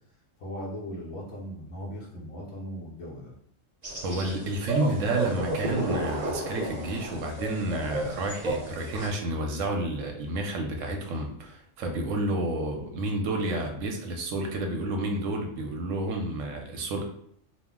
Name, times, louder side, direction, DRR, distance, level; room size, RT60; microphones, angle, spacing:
voice 1, 0.4-3.3, equal, 60° left, -3 dB, 1.0 m, -38 dB
sound 1, 3.8-9.1, right 2 dB, 35° right, 0.9 m, -32 dB
voice 2, 4.0-17.0, right 1 dB, 80° right, 3 dB, 1.0 m, -30 dB
2.5 x 2.0 x 3.5 m, 0.68 s
omnidirectional pair, 1.3 m